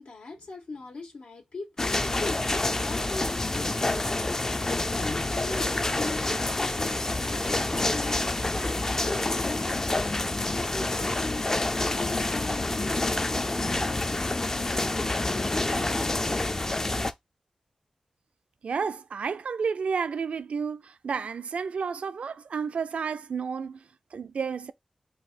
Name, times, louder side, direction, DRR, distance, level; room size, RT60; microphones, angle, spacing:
voice 1, 0.0-16.1, left 3 dB, 85° left, 1.6 m, -41 dB
sound 1, 1.8-17.1, left 2 dB, 25° left, 0.4 m, -28 dB
voice 2, 18.6-24.7, right 5 dB, 80° right, 0.4 m, -31 dB
4.6 x 2.8 x 4.1 m
wide cardioid pair, 115°, 2 cm